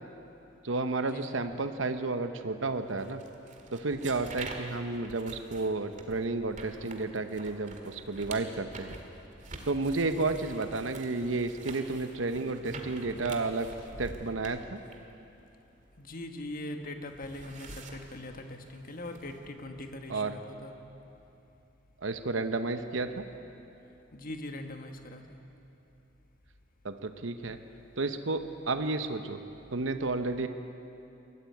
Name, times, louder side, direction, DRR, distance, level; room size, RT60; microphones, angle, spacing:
voice 1, 0.6-3.2 3.7-9.0 9.7-13.7 14.0-14.8 20.1-20.4 22.0-23.2 26.8-27.6 28.0-29.4 29.7-30.5, right 3 dB, 80° right, 8 dB, 0.9 m, -32 dB
sound 1, 3.0-16.5 16.8-19.5, right 2 dB, 40° right, 1.9 m, -47 dB
voice 2, 16.0-20.7 24.1-25.4, left 1 dB, 50° left, 5 dB, 1.5 m, -41 dB
21.5 x 14.0 x 9.4 m, 2.8 s
head